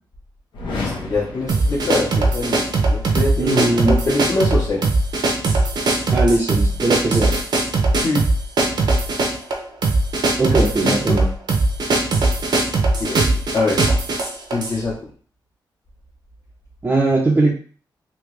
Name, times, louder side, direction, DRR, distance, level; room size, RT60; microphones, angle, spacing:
sound 1, 0.5-2.5, left 3 dB, 80° left, 1.2 m, -32 dB
voice 1, 0.7-4.9 8.0-8.2 10.8-11.2 13.0-13.2 13.5-13.8 14.5-15.1, left 2 dB, 45° left, -8 dB, 1.3 m, -24 dB
sound 2, 1.5-14.8, right 2 dB, 60° right, 0.8 m, -20 dB
voice 2, 3.4-4.1 6.1-7.3 10.4-11.3 16.8-17.5, right 2 dB, 25° right, -2 dB, 0.6 m, -19 dB
3.4 x 2.9 x 3.3 m, 0.42 s
wide cardioid pair, 120°, 8 cm